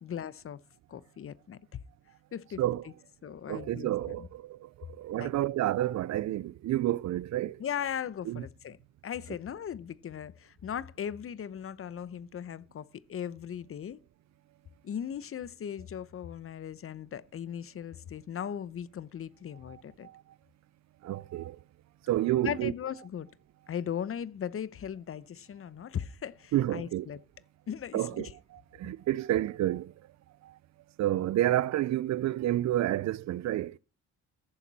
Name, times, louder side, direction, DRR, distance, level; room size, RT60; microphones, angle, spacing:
voice 1, 0.0-0.6 0.9-1.6 2.3-2.6 3.2-4.3 5.2-5.3 7.6-8.8 9.0-14.0 14.8-20.1 22.4-23.3 23.7-27.2 27.7-28.3, left 9 dB, 45° left, 0.8 m, -38 dB
voice 2, 3.3-7.6 8.3-8.4 19.7-20.2 21.0-21.6 22.0-22.7 26.5-27.1 27.9-29.9 30.4-30.6 31.0-33.8, right 14 dB, 65° right, 0.5 m, -30 dB
15.0 x 7.2 x 4.1 m
cardioid pair, 90°, 30 cm